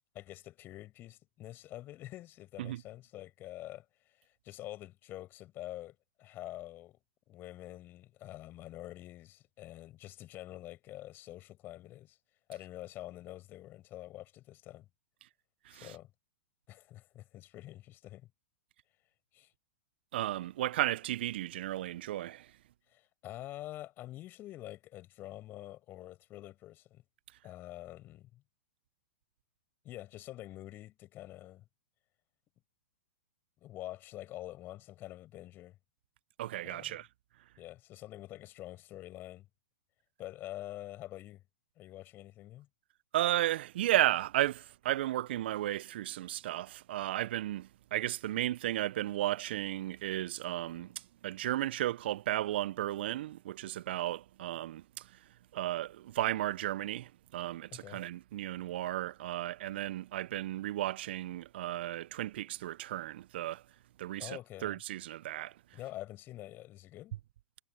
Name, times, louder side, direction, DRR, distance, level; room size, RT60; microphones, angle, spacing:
voice 1, 0.1-7.0 7.3-12.2 12.5-14.9 15.7-16.1 16.7-18.3 19.3-19.5 22.9-27.0 27.4-28.4 29.8-31.6 33.6-35.8 36.6-37.0 37.6-39.5 40.2-41.4 41.8-42.7 57.7-58.0 64.2-64.8 65.7-67.2, left 15 dB, 30° left, 7.2 m, -46 dB
voice 2, 20.1-22.4 36.4-37.1 43.1-50.9 51.2-54.8 55.5-63.6 64.0-65.5, right 14 dB, 55° right, 1.3 m, -34 dB
figure-of-eight pair, 110°, 7 cm